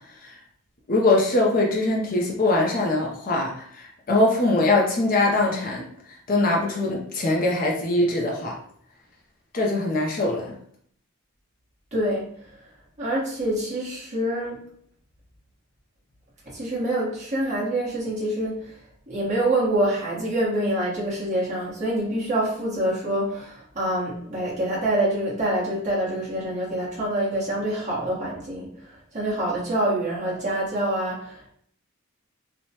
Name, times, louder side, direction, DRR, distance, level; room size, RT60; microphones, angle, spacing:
voice 1, 0.9-8.6 9.5-10.5, left 2 dB, 40° left, -1 dB, 0.5 m, -22 dB
voice 2, 11.9-12.6 13.0-14.6 16.5-18.8 19.1-31.5, right 1 dB, 35° right, -7 dB, 1.1 m, -26 dB
3.0 x 2.1 x 2.8 m, 0.64 s
head